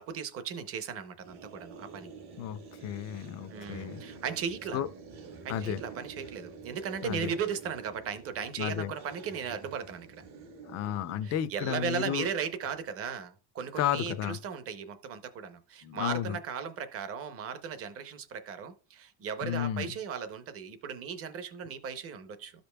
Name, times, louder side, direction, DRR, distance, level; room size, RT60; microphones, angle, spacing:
voice 1, 0.0-2.1 3.5-4.8 5.4-10.2 11.2-22.5, right 7 dB, 35° right, 0.7 m, -37 dB
sound 1, 1.2-11.7, right 4 dB, 70° right, 1.3 m, -48 dB
voice 2, 2.4-4.0 4.7-4.9 5.5-5.8 7.0-7.3 8.6-8.9 10.6-12.3 13.8-14.4 15.8-16.4 19.4-19.9, left 10 dB, 40° left, 0.4 m, -33 dB
13.0 x 5.2 x 2.2 m
cardioid pair, 175°, 42 cm